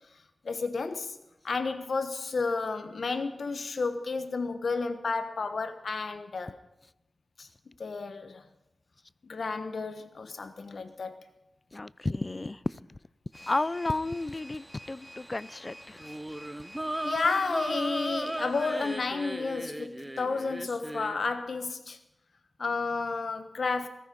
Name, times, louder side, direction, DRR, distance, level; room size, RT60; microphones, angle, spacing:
voice 1, 0.4-1.2 1.4-6.5 7.4-7.5 7.8-8.4 9.3-11.2 17.0-22.0 22.6-23.9, left 4 dB, 75° left, 1.3 m, -31 dB
voice 2, 11.7-12.8 13.3-16.0, left 2 dB, 35° left, 0.4 m, -32 dB
sound 1, 13.3-19.0, equal, 5° left, 3.5 m, -50 dB
sound 2, 16.0-21.3, right 1 dB, 15° right, 0.6 m, -36 dB
16.5 x 14.5 x 5.3 m
wide cardioid pair, 70°, 0 cm